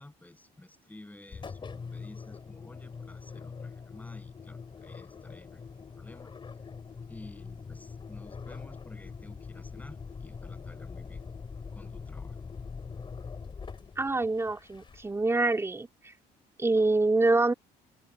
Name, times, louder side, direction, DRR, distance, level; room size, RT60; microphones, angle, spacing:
voice 1, 0.0-6.3 7.1-11.2 11.7-12.4, left 1 dB, 10° left, 7.5 m, -52 dB
Engine, 1.3-15.3, left 5 dB, 30° left, 3.0 m, -43 dB
voice 2, 14.0-15.9 16.6-17.5, right 2 dB, 15° right, 2.5 m, -25 dB
cardioid pair, 110°, 17 cm